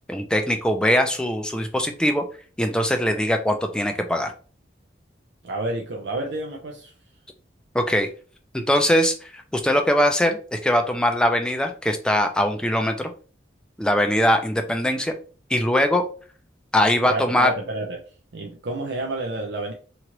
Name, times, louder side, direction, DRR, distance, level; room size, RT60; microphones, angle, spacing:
voice 1, 0.1-2.2 2.6-4.3 7.7-8.1 8.5-13.1 13.8-15.1 15.5-16.0 16.7-17.5, equal, 5° left, 0.3 m, -21 dB
voice 2, 5.4-6.9 17.0-19.7, right 2 dB, 75° right, 0.5 m, -30 dB
2.9 x 2.4 x 2.9 m
head